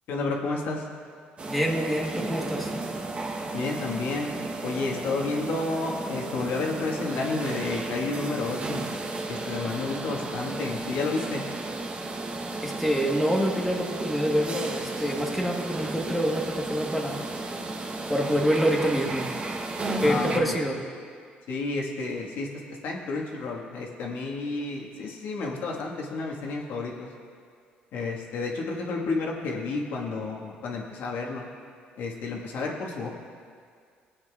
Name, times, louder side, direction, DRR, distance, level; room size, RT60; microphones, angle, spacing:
voice 1, 0.1-0.9 3.5-4.3 4.6-8.8 9.3-11.5 20.0-20.6 21.5-27.1 27.9-31.5 32.0-33.1, left 3 dB, 70° left, -1 dB, 1.4 m, -31 dB
sound 1, 1.4-20.4, right 2 dB, 35° right, 0.9 m, -33 dB
voice 2, 1.5-2.7 12.6-17.2 18.1-19.3 20.0-20.8, equal, ahead, -1 dB, 1.2 m, -26 dB
19.0 x 8.7 x 2.3 m, 2.1 s
cardioid pair, 115°, 4 cm